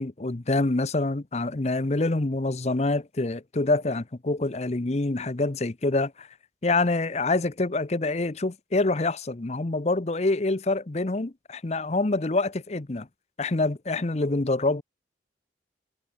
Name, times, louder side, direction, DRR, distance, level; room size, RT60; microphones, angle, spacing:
voice 1, 0.0-6.3 6.6-13.1 13.4-14.8, left 2 dB, 35° left, 0.8 m, -26 dB
head